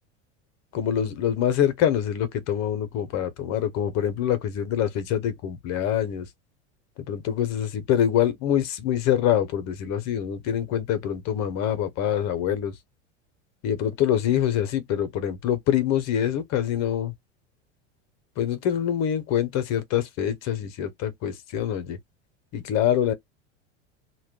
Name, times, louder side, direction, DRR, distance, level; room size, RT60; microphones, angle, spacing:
voice 1, 0.7-6.3 7.1-12.7 13.6-17.1 18.4-22.0 22.5-23.1, left 10 dB, 50° left, 0.9 m, -25 dB
2.3 x 2.1 x 3.6 m
hypercardioid pair, 100°, 35 cm